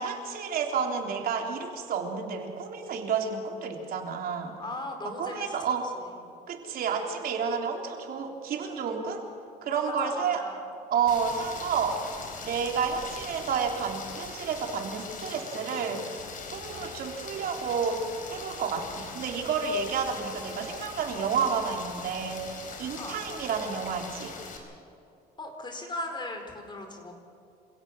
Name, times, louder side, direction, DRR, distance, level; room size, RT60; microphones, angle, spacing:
voice 1, 0.0-4.6 5.2-5.8 6.5-9.3 9.6-10.4 10.9-12.1 12.4-16.1 16.5-18.0 18.3-24.4, right 6 dB, 60° right, 2 dB, 3.5 m, -30 dB
voice 2, 4.6-5.5 5.9-6.4 9.7-10.7 19.7-19.8 23.0-23.2 25.4-27.1, left 2 dB, 25° left, 4 dB, 4.6 m, -38 dB
Rain, 11.1-24.6, left 4 dB, 50° left, 4.3 m, -41 dB
27.0 x 17.0 x 6.3 m, 2.6 s
cardioid pair, 110°, 17 cm